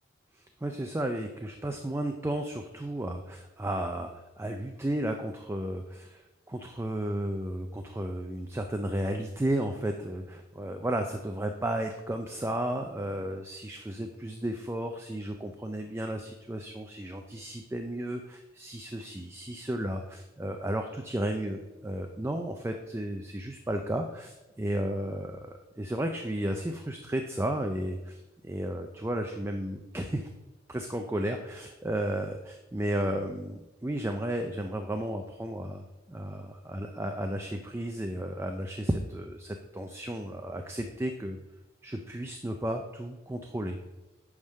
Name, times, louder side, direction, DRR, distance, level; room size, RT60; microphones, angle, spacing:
voice 1, 0.3-30.3 30.7-41.4 41.8-43.8, right 1 dB, 15° right, 5 dB, 0.4 m, -33 dB
9.5 x 3.6 x 6.4 m, 1.1 s
head